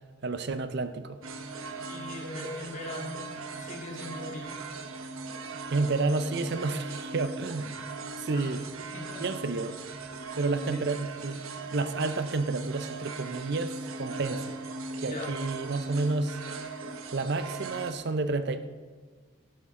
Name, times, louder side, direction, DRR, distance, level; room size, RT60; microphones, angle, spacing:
voice 1, 0.2-1.2 5.7-7.8 8.2-8.6 9.2-9.8 10.4-11.4 11.7-14.5 15.0-16.4 17.1-18.7, right 3 dB, 55° right, 11 dB, 0.6 m, -30 dB
sound 1, 1.2-17.9, right 3 dB, 85° right, 1.0 m, -39 dB
voice 2, 1.9-4.6 8.3-8.6 8.9-9.2 10.7-10.8 15.0-15.3, left 1 dB, 35° left, -1 dB, 2.4 m, -40 dB
13.5 x 11.0 x 3.7 m, 1.5 s
head